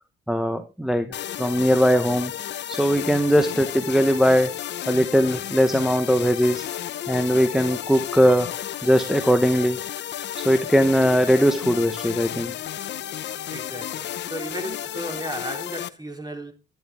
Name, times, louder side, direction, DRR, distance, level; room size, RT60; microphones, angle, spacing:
voice 1, 0.3-1.1 1.4-2.3 2.7-4.5 4.9-6.7 7.1-8.5 8.8-9.8 10.4-12.5, equal, ahead, 1.0 m, -20 dB
sound 1, 1.1-15.9, left 11 dB, 60° left, 0.7 m, -33 dB
voice 2, 13.5-16.5, right 1 dB, 20° right, 3.4 m, -35 dB
11.5 x 10.5 x 3.6 m
cardioid pair, 90°, 20 cm